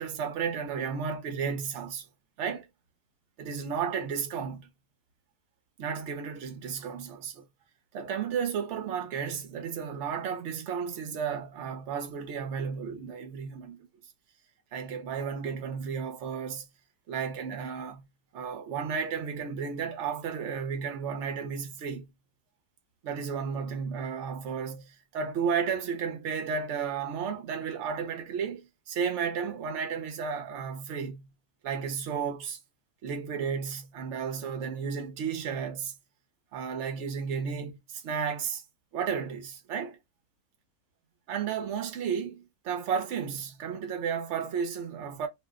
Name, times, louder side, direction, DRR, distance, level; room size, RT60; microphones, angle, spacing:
voice 1, 0.0-2.1 2.4-2.7 3.4-4.7 5.8-7.4 7.9-13.9 14.7-16.7 17.1-18.0 18.3-22.1 23.0-31.3 31.6-32.6 33.0-35.9 36.5-38.6 38.9-40.0 41.3-45.3, right 6 dB, 55° right, 0.9 m, -33 dB
2.7 x 2.1 x 3.5 m
omnidirectional pair, 1.7 m